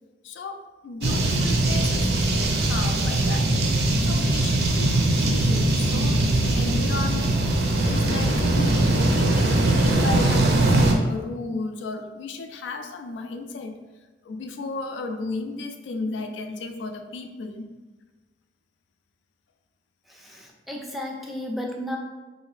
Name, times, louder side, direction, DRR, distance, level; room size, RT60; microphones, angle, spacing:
voice 1, 0.2-3.5 4.0-13.8 14.2-17.7, left 3 dB, 90° left, 6 dB, 0.4 m, -34 dB
sound 1, 1.0-10.9, right 2 dB, 60° right, 0.5 m, -21 dB
voice 2, 20.1-22.0, left 1 dB, ahead, -1 dB, 0.3 m, -33 dB
3.2 x 2.7 x 3.2 m, 1.2 s
head